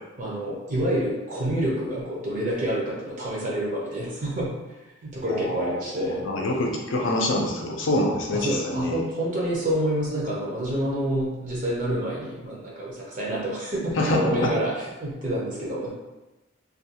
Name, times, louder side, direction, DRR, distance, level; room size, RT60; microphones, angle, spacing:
voice 1, 0.2-4.5 5.0-6.3 8.3-15.9, right 1 dB, 35° right, -5 dB, 0.5 m, -28 dB
voice 2, 5.3-9.0 14.0-14.5, left 1 dB, 60° left, 0 dB, 0.5 m, -26 dB
2.4 x 2.2 x 2.8 m, 1.1 s
head